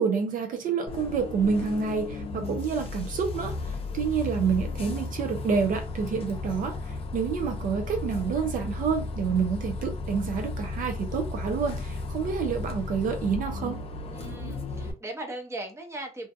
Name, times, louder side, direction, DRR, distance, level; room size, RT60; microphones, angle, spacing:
voice 1, 0.0-13.8, right 6 dB, 50° right, 0.6 m, -28 dB
Bus, 0.9-14.9, left 3 dB, 35° left, 0.6 m, -34 dB
voice 2, 14.1-16.3, right 2 dB, 15° right, 0.8 m, -38 dB
2.6 x 2.2 x 2.6 m
cardioid pair, 110°, 17 cm